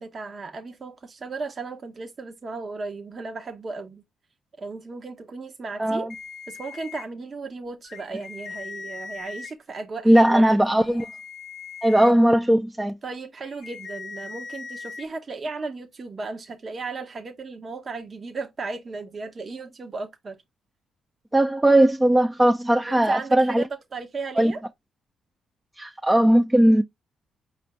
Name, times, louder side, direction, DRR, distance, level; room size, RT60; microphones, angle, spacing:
voice 1, 0.0-4.0 4.6-6.1 6.5-10.6 13.0-20.4 22.9-24.6, right 3 dB, 45° right, 0.8 m, -35 dB
sound 1, 6.1-7.1 7.8-9.5 10.8-12.1 13.4-15.1, left 5 dB, 60° left, 0.7 m, -39 dB
voice 2, 10.1-11.1 11.8-13.0 21.3-23.6 24.4-24.5 25.8-26.8, right 1 dB, 10° right, 0.5 m, -18 dB
5.0 x 2.5 x 3.3 m
supercardioid pair, 55°, 0 cm